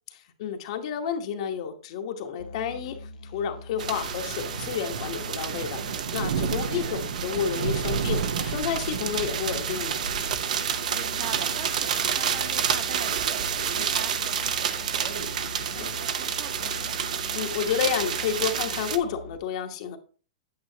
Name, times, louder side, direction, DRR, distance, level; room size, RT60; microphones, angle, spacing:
voice 1, 0.4-10.0 15.7-15.9 17.3-20.0, left 8 dB, 50° left, 1.1 m, -30 dB
Musical instrument, 2.4-19.4, left 2 dB, 80° left, 0.9 m, -43 dB
sound 1, 3.8-19.0, right 7 dB, 75° right, 0.8 m, -29 dB
voice 2, 6.5-7.1 10.9-17.0, right 8 dB, 40° right, 1.0 m, -42 dB
8.7 x 7.5 x 2.8 m
hypercardioid pair, 160°, 4 cm